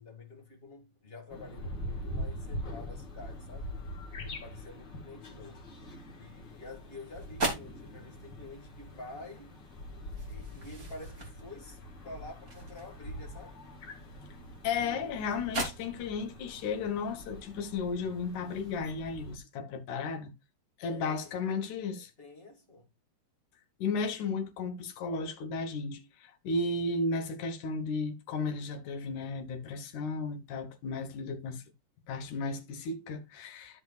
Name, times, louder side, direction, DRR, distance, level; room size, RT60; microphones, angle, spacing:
voice 1, 0.0-3.7 4.2-5.7 6.2-9.6 10.3-11.8 12.0-13.6 20.8-22.9, left 2 dB, 20° left, 1.6 m, -49 dB
sound 1, 1.3-19.4, left 1 dB, 40° left, 1.9 m, -44 dB
sound 2, 6.4-18.9, right 2 dB, 25° right, 2.8 m, -43 dB
voice 2, 14.6-20.3 20.8-22.1 23.8-31.6 32.1-33.8, left 4 dB, 65° left, 2.4 m, -34 dB
13.5 x 6.1 x 2.4 m
omnidirectional pair, 4.0 m